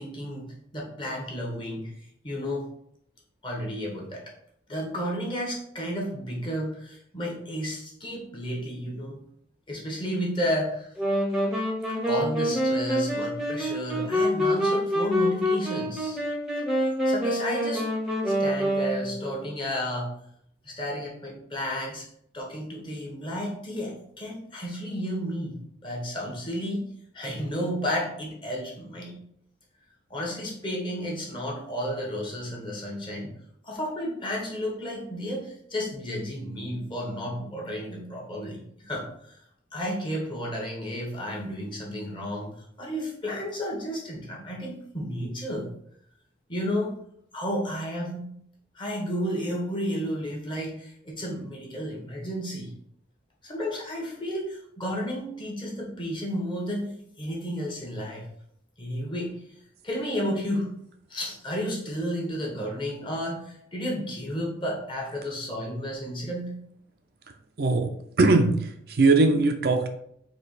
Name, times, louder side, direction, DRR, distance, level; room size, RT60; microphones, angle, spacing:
voice 1, 0.0-1.9 2.2-2.7 3.4-4.2 4.7-9.2 9.7-10.9 12.1-16.2 17.0-17.9 18.2-20.2 20.6-22.1 22.3-26.8 27.1-29.2 30.1-33.3 33.6-39.4 39.7-45.7 46.5-47.0 47.3-48.3 48.7-52.7 53.4-58.3 58.8-59.3 59.8-60.7 61.1-66.5, equal, 25° left, -2 dB, 1.1 m, -32 dB
sound 1, 11.0-19.4, equal, ahead, 0.8 m, -26 dB
voice 2, 67.6-67.9 68.2-69.9, right 3 dB, 55° right, 5 dB, 0.5 m, -20 dB
4.2 x 2.9 x 4.1 m, 0.70 s
head